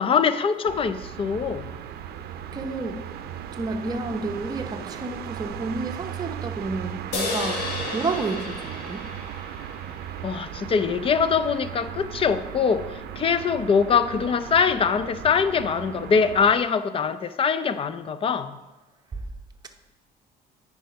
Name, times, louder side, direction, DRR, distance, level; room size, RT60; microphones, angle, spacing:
voice 1, 0.0-1.7 10.2-18.6, left 6 dB, 35° left, 12 dB, 0.5 m, -23 dB
sound 1, 0.6-16.6, right 9 dB, 70° right, 0.5 m, -37 dB
voice 2, 2.5-3.1 3.5-9.1 19.1-19.2, right 3 dB, 25° right, 3 dB, 0.8 m, -31 dB
sound 2, 7.1-10.6, left 4 dB, 85° left, 1.5 m, -33 dB
9.3 x 4.8 x 5.1 m, 1.1 s
cardioid pair, 110°, 17 cm